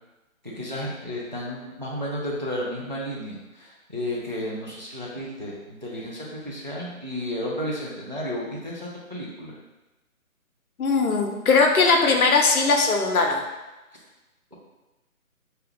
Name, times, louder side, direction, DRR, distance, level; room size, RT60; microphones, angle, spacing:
voice 1, 0.4-9.6, equal, 35° right, -5 dB, 0.4 m, -32 dB
voice 2, 10.8-13.4, left 4 dB, 80° left, 3 dB, 0.7 m, -20 dB
2.8 x 2.3 x 3.3 m, 1.1 s
figure-of-eight pair, 165°, 42 cm